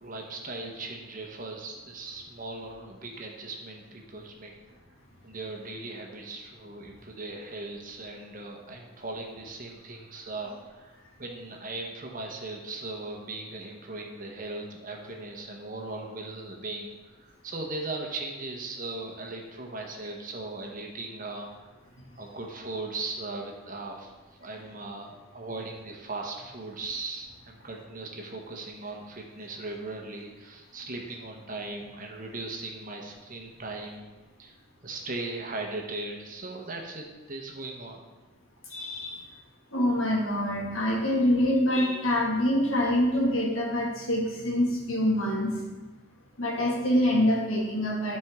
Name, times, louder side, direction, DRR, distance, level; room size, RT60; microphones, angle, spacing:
voice 1, 0.0-4.5 5.2-16.9 17.2-21.7 22.2-24.1 24.4-34.1 34.4-34.5 34.8-38.0, right 2 dB, 40° right, 1 dB, 1.0 m, -38 dB
voice 2, 38.7-39.2 39.7-45.6 46.4-48.2, left 1 dB, 75° left, -3 dB, 2.0 m, -25 dB
12.0 x 4.5 x 3.6 m, 1.2 s
head